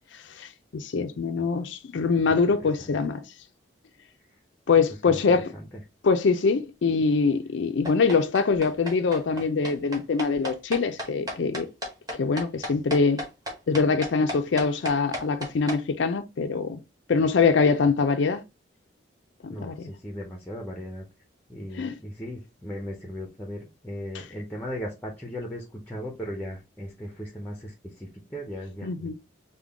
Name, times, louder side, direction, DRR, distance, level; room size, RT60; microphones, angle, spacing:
voice 1, 0.4-3.2 4.7-5.5 6.0-11.7 12.1-13.2 13.7-16.8 17.1-18.4 19.4-19.9 21.7-22.0 28.8-29.1, left 4 dB, 75° left, 0.4 m, -24 dB
voice 2, 2.3-3.0 5.1-5.2 5.5-5.7 19.5-21.0 21.5-29.1, equal, 10° left, 0.5 m, -37 dB
sound 1, 7.8-15.8, equal, 20° right, 1.0 m, -34 dB
3.6 x 2.2 x 3.4 m
head